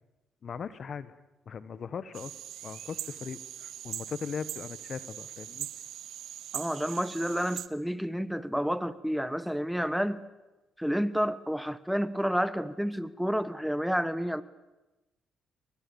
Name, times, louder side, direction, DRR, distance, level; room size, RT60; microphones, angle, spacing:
voice 1, 0.4-1.1 1.4-2.3 2.6-5.7, left 6 dB, 50° left, 14 dB, 1.4 m, -39 dB
sound 1, 2.1-7.7, right 11 dB, 80° right, 1.2 m, -41 dB
voice 2, 6.5-10.2 10.8-14.4, equal, ahead, 14 dB, 1.1 m, -30 dB
30.0 x 24.0 x 7.3 m, 1.1 s
cardioid pair, 90°, 0 cm